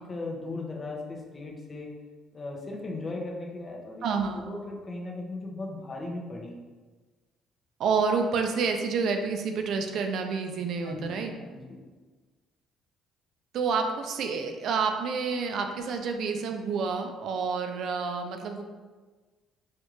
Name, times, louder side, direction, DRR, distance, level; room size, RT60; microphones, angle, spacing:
voice 1, 0.1-1.9 2.3-6.5 10.8-11.8, left 2 dB, 35° left, -1 dB, 0.8 m, -37 dB
voice 2, 4.0-4.5 7.8-11.3 13.5-18.6, right 5 dB, 65° right, 5 dB, 0.4 m, -29 dB
4.3 x 2.4 x 3.1 m, 1.4 s
supercardioid pair, 80°, 0 cm